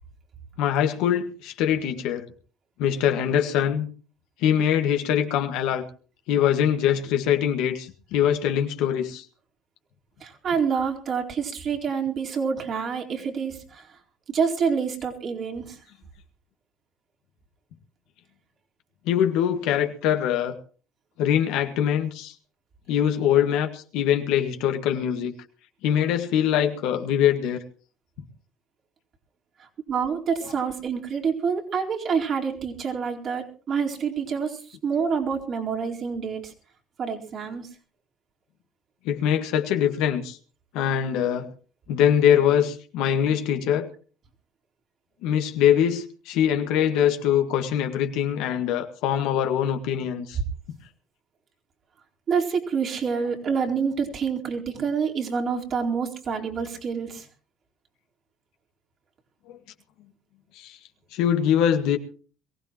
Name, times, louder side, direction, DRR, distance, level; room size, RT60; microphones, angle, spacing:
voice 1, 0.6-2.3 2.8-3.9 4.4-5.9 6.3-9.3 19.1-20.6 21.2-22.3 22.9-25.3 25.8-27.6 39.1-40.4 40.7-41.5 41.9-43.9 45.2-50.4 59.5-59.6 60.6-60.8 61.1-62.0, left 9 dB, 75° left, 5 dB, 1.7 m, -23 dB
voice 2, 10.2-14.0 14.3-15.8 29.6-36.5 37.0-37.7 52.3-57.3, right 6 dB, 50° right, 0 dB, 4.2 m, -27 dB
22.5 x 16.0 x 3.0 m, 0.39 s
supercardioid pair, 85°, 0 cm